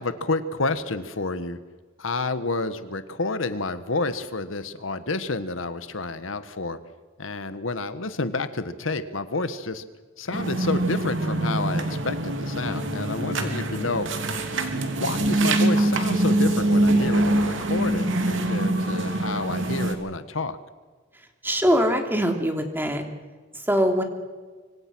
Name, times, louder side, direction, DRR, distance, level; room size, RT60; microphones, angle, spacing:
voice 1, 0.0-1.6 2.0-6.8 7.2-9.8 10.2-14.1 14.7-20.6, left 3 dB, 85° left, 11 dB, 1.5 m, -29 dB
sound 1, 10.3-19.9, right 1 dB, 70° right, 3.2 m, -24 dB
voice 2, 21.1-23.0 23.5-24.0, equal, 10° right, 4 dB, 3.0 m, -23 dB
26.0 x 24.5 x 6.3 m, 1.4 s
head